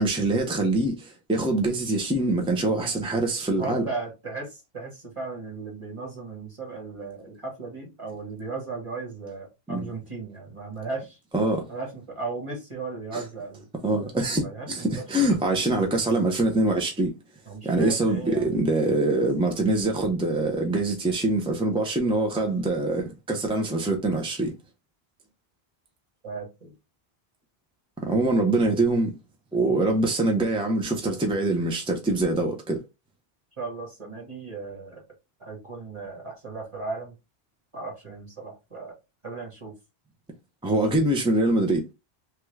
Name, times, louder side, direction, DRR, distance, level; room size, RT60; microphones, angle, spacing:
voice 1, 0.0-3.9 9.7-9.9 11.3-11.7 13.1-13.2 13.8-17.1 17.6-24.5 28.0-29.2 29.5-32.8 40.6-41.9, right 2 dB, 10° right, 0.3 m, -24 dB
voice 2, 3.6-11.2 11.7-13.7 14.4-15.3 17.5-18.5 26.2-26.7 33.6-35.0 35.4-37.2 37.7-39.0 39.2-39.7, right 3 dB, 30° right, 1.4 m, -36 dB
3.1 x 2.4 x 3.1 m
omnidirectional pair, 1.0 m